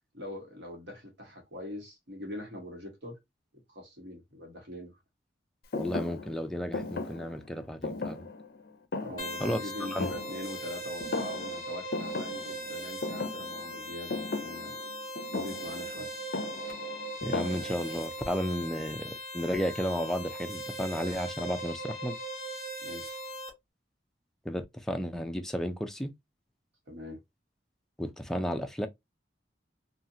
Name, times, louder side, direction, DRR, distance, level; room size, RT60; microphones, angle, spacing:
voice 1, 0.1-3.2 3.7-4.9 9.0-14.8 15.3-16.1 22.8-23.2 26.9-27.2, left 1 dB, 70° right, 1.2 m, -42 dB
Thump thud, 5.7-10.7 11.0-11.6 11.9-18.0, left 3 dB, 55° left, 0.5 m, -37 dB
voice 2, 5.7-8.3 9.4-9.6 9.9-10.1 17.2-22.2 24.5-26.1 28.0-28.9, equal, 5° left, 0.3 m, -33 dB
sound 1, 9.2-23.5, right 1 dB, 20° left, 1.3 m, -39 dB
2.7 x 2.4 x 2.5 m
head